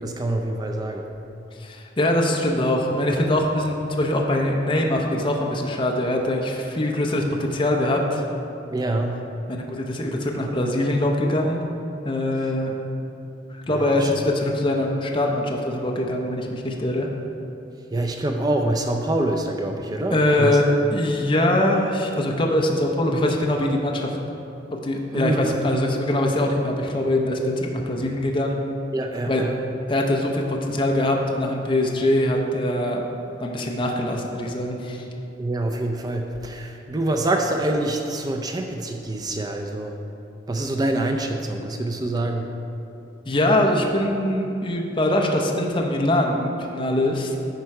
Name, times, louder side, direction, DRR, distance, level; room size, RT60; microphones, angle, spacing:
voice 1, 0.0-1.0 8.7-9.2 13.7-14.1 17.9-20.6 25.1-25.6 28.9-29.5 35.4-39.9 40.5-42.5, right 1 dB, 20° right, 3 dB, 0.4 m, -25 dB
voice 2, 1.6-8.2 9.5-11.6 12.0-12.8 13.5-17.1 20.1-20.7 20.9-24.1 24.8-28.6 29.3-29.4 29.9-33.0 33.4-35.1 43.3-47.4, left 1 dB, 25° left, 0 dB, 0.6 m, -23 dB
10.5 x 4.3 x 4.7 m, 2.8 s
head